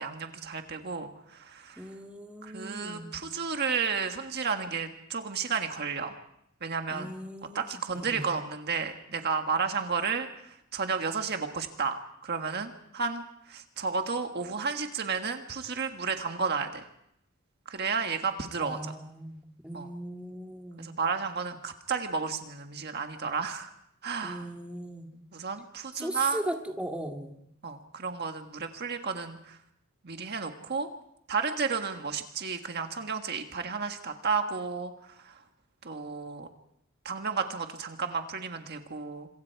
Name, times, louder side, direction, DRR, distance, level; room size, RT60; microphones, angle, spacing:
voice 1, 0.0-1.8 2.4-6.2 6.6-7.1 7.5-13.2 13.5-16.8 17.7-18.9 19.7-19.9 20.8-23.7 24.0-24.5 25.3-26.4 27.6-29.6 30.0-30.9 31.3-34.9 35.2-35.4 35.8-36.5 37.0-39.3, right 5 dB, 50° right, 5 dB, 1.6 m, -32 dB
voice 2, 1.8-3.1 6.9-8.2 18.6-20.9 24.2-25.1 26.0-27.4, right 1 dB, 5° right, 3 dB, 2.0 m, -38 dB
26.5 x 24.0 x 4.7 m, 0.76 s
head